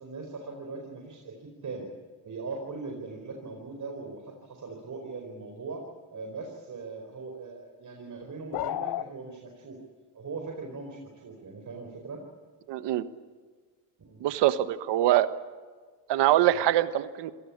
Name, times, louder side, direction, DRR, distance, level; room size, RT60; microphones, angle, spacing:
voice 1, 0.0-1.9 2.2-5.9 6.1-9.8 10.1-12.2 14.0-14.2 16.5-16.6, right 4 dB, 45° right, 2 dB, 4.8 m, -40 dB
sound 1, 8.5-9.1, left 14 dB, 60° left, 0.7 m, -31 dB
voice 2, 12.7-13.1 14.2-15.3 16.1-17.3, right 13 dB, 80° right, 12 dB, 1.4 m, -23 dB
27.5 x 17.5 x 8.7 m, 1.5 s
supercardioid pair, 80°, 42 cm